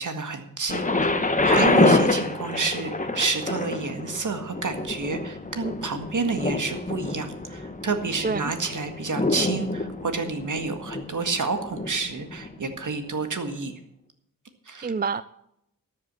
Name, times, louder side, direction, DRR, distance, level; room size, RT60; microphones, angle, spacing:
voice 1, 0.0-13.7 14.7-14.9, right 4 dB, 60° right, 7 dB, 1.9 m, -29 dB
Thunder, 0.7-12.5 13.3-13.4, left 2 dB, 20° left, 1.2 m, -26 dB
voice 2, 1.6-2.0 8.2-8.5 14.8-15.2, right 4 dB, 30° right, 15 dB, 0.4 m, -27 dB
13.0 x 7.5 x 7.5 m, 0.77 s
wide cardioid pair, 90°, 34 cm